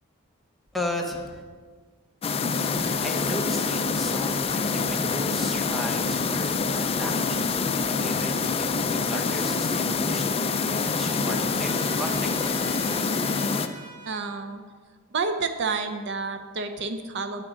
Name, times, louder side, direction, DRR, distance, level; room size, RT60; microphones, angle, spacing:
voice 1, 0.7-1.4 2.8-7.4 7.7-10.2 10.7-12.8, left 1 dB, ahead, 1 dB, 1.0 m, -35 dB
sound 1, 2.2-13.7, left 4 dB, 30° left, 0.4 m, -26 dB
Trumpet, 9.7-14.5, right 2 dB, 40° right, 1.5 m, -45 dB
voice 2, 14.1-14.6 15.1-17.4, right 4 dB, 60° right, 7 dB, 0.6 m, -29 dB
8.6 x 7.2 x 5.0 m, 1.5 s
head